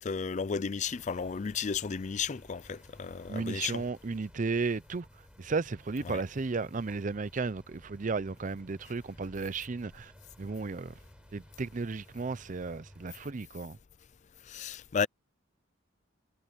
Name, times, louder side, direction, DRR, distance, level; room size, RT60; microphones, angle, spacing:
voice 1, 0.0-3.8 6.1-6.2 14.5-15.1, left 6 dB, 40° left, 0.4 m, -33 dB
sound 1, 0.8-13.3, equal, 5° right, 4.3 m, -56 dB
voice 2, 3.3-5.1 5.4-10.1 10.4-10.9 11.3-13.8, right 4 dB, 40° right, 0.5 m, -34 dB
head